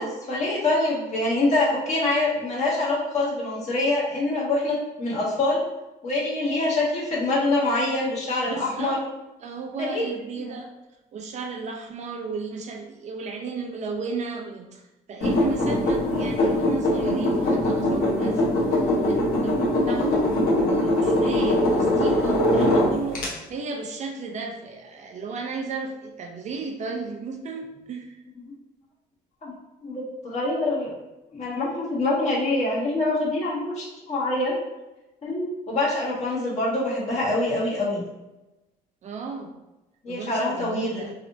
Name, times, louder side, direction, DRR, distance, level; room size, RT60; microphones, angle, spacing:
voice 1, 0.0-5.6 6.0-9.0 9.8-10.0 10.4-10.5 28.4-28.5 29.4-29.5 29.8-30.9 31.3-34.5 35.2-38.0 40.0-41.0, left 2 dB, 40° left, -5 dB, 1.3 m, -25 dB
voice 2, 8.5-9.0 9.4-10.7 11.1-14.8 15.1-28.2 39.0-39.5 40.1-41.1, right 4 dB, 45° right, 3 dB, 0.5 m, -34 dB
sound 1, 15.2-23.3, left 1 dB, 60° left, 1.0 m, -22 dB
3.2 x 2.8 x 2.6 m, 1.0 s
cardioid pair, 110°, 17 cm